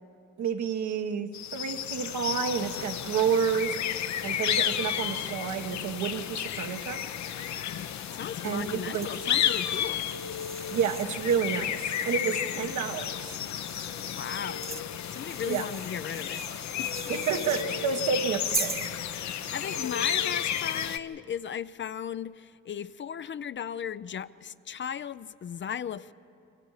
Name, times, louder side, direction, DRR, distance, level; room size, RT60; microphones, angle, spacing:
voice 1, 0.4-3.7 4.2-7.0 8.4-9.1 10.7-13.4 15.4-15.6 17.1-18.9, right 7 dB, 70° right, 1.4 m, -30 dB
sound 1, 1.3-21.0, left 9 dB, 65° left, 0.9 m, -32 dB
sound 2, 7.0-12.6 13.2-17.7 18.5-19.0, right 4 dB, 20° right, 0.6 m, -41 dB
voice 2, 8.1-10.0 14.0-14.7 15.1-16.9 19.2-26.1, left 8 dB, 40° left, 0.5 m, -36 dB
29.0 x 24.0 x 4.9 m
cardioid pair, 90°, 30 cm